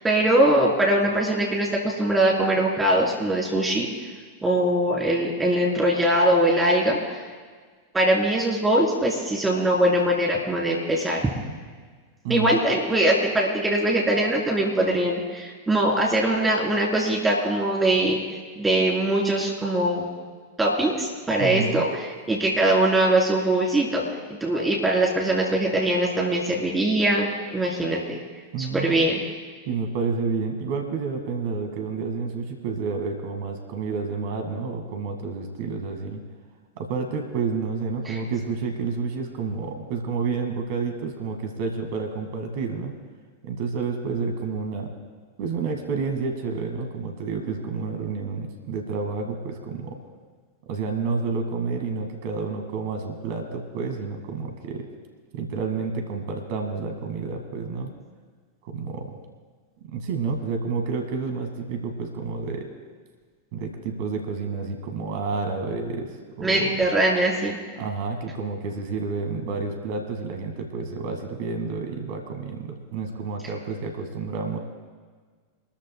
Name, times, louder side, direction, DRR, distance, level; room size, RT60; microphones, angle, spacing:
voice 1, 0.0-3.9 4.4-7.2 7.9-11.3 12.3-18.2 18.6-20.1 20.6-24.0 24.3-28.2 28.6-29.2 38.1-38.2 66.4-67.6, right 1 dB, 10° right, -2 dB, 3.7 m, -22 dB
voice 2, 21.4-21.9 28.5-29.0 29.7-36.2 36.8-43.0 43.4-44.9 45.4-49.9 50.7-54.9 55.3-57.9 58.6-59.1 59.9-62.7 63.5-66.7 67.8-74.6, right 4 dB, 50° right, 4 dB, 2.0 m, -29 dB
26.0 x 13.5 x 2.3 m, 1.5 s
figure-of-eight pair, 90°, 0 cm